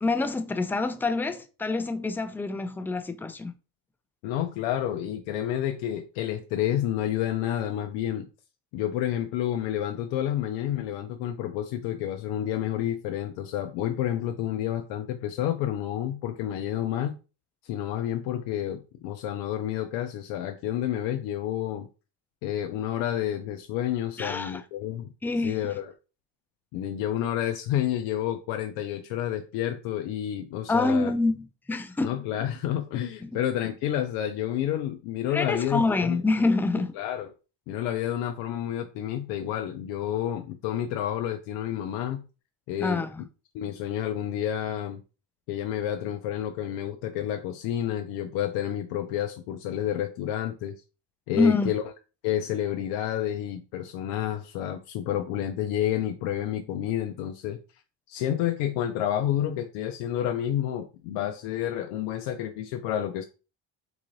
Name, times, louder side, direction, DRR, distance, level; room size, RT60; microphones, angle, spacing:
voice 1, 0.0-3.5 24.2-24.6 25.2-25.6 30.7-32.1 33.2-33.3 35.3-36.9 42.8-43.3 51.4-51.7, left 3 dB, 5° left, 0.3 m, -26 dB
voice 2, 4.2-8.3 8.7-17.2 17.6-21.9 22.4-25.1 25.4-25.9 26.7-31.1 32.0-36.2 37.0-37.3 37.7-42.2 42.7-43.0 43.5-45.0 45.5-50.8 51.3-51.8 52.2-57.6 58.1-63.2, left 11 dB, 80° left, 0.6 m, -29 dB
3.9 x 2.4 x 3.1 m
supercardioid pair, 70°, 48 cm